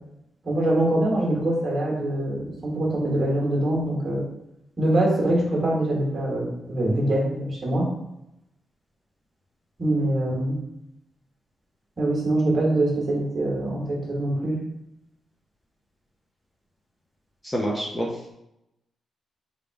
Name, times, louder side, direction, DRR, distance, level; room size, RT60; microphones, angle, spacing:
voice 1, 0.4-4.2 4.8-7.9 9.8-10.6 12.0-14.6, right 1 dB, 30° right, -3 dB, 1.5 m, -24 dB
voice 2, 17.4-18.3, equal, 10° left, -3 dB, 0.5 m, -28 dB
3.5 x 2.6 x 4.6 m, 0.86 s
wide cardioid pair, 155°, 0 cm